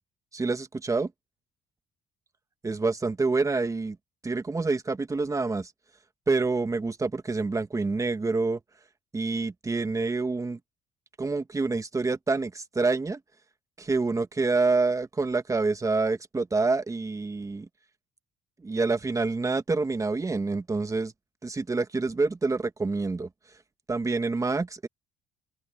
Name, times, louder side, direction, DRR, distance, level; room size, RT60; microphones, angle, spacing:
voice 1, 0.3-1.1 2.6-4.0 4.2-5.7 6.3-8.6 9.1-10.6 11.2-13.2 13.8-17.7 18.6-21.1 21.4-23.3 23.9-24.9, right 3 dB, 20° right, 1.4 m, -27 dB
open air
cardioid pair, 110°, 17 cm